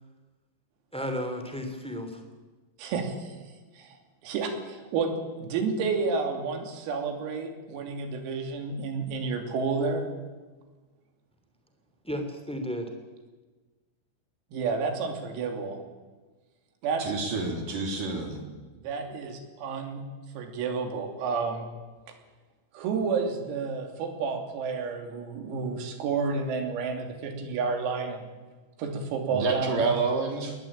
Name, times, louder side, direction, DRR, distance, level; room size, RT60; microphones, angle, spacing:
voice 1, 0.9-2.2 12.0-12.9, equal, 5° left, 6 dB, 1.0 m, -33 dB
voice 2, 2.8-3.4 3.7-5.1 5.4-10.1 14.5-15.8 16.8-17.1 18.8-20.0 20.4-21.7 22.7-28.3 28.8-29.9, right 4 dB, 85° right, 5 dB, 5.7 m, -30 dB
voice 3, 17.0-18.4 29.3-30.6, right 4 dB, 45° right, 3 dB, 4.8 m, -28 dB
20.5 x 20.0 x 8.8 m, 1.3 s
omnidirectional pair, 6.0 m